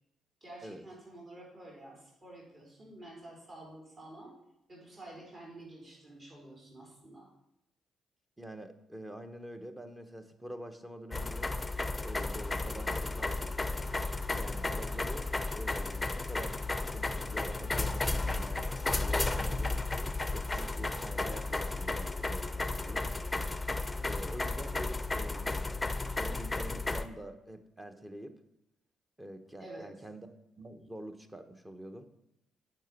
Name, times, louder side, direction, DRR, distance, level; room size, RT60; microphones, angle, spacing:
voice 1, 0.4-4.4 4.7-7.3 29.6-30.0, right 1 dB, 35° right, -3 dB, 3.8 m, -49 dB
voice 2, 8.4-11.5 12.0-13.5 14.3-15.3 15.5-19.8 20.3-23.1 24.0-25.8 26.1-28.3 29.2-30.3 30.6-32.1, right 1 dB, 15° right, 7 dB, 1.1 m, -46 dB
sound 1, 11.1-27.0, left 2 dB, 15° left, 0.7 m, -33 dB
9.0 x 5.8 x 6.0 m, 0.84 s
supercardioid pair, 70°, 0 cm